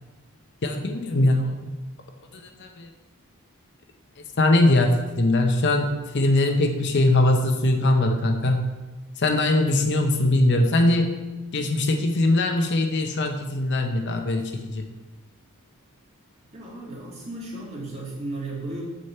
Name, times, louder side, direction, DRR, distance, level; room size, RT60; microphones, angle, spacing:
voice 1, 0.6-1.7 2.6-2.9 4.4-8.6 9.2-11.2 11.5-14.8, left 2 dB, 50° left, 4 dB, 0.8 m, -21 dB
voice 2, 16.5-18.8, right 2 dB, 30° right, -4 dB, 2.0 m, -34 dB
7.5 x 6.5 x 4.4 m, 1.2 s
head